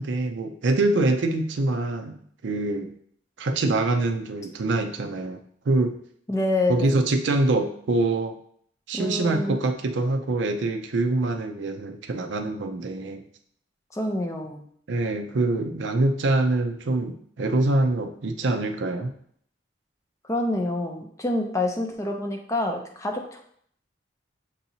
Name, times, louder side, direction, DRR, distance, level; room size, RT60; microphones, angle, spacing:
voice 1, 0.0-2.2 2.4-2.9 3.4-5.9 6.7-8.3 8.9-13.2 14.9-19.1, right 2 dB, 70° right, 7 dB, 0.5 m, -25 dB
voice 2, 6.3-7.0 8.9-9.6 13.9-14.6 20.3-23.4, left 2 dB, 15° left, 3 dB, 0.5 m, -27 dB
6.8 x 2.8 x 2.7 m, 0.64 s
head